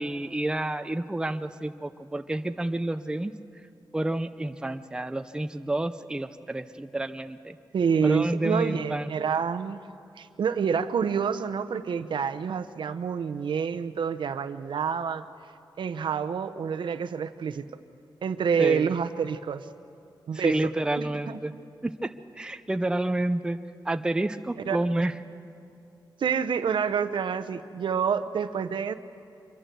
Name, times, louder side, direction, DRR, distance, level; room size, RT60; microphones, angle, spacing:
voice 1, 0.0-3.3 3.9-7.6 8.0-9.3 18.6-19.0 20.3-21.5 21.8-23.6 23.8-25.1, right 1 dB, 10° right, 9 dB, 0.6 m, -29 dB
voice 2, 7.7-9.8 10.2-15.3 15.8-17.7 18.2-19.7 20.3-21.4 24.6-24.8 26.2-29.0, right 6 dB, 75° right, 10 dB, 0.8 m, -28 dB
25.0 x 22.0 x 6.9 m, 2.6 s
wide cardioid pair, 140°, 8 cm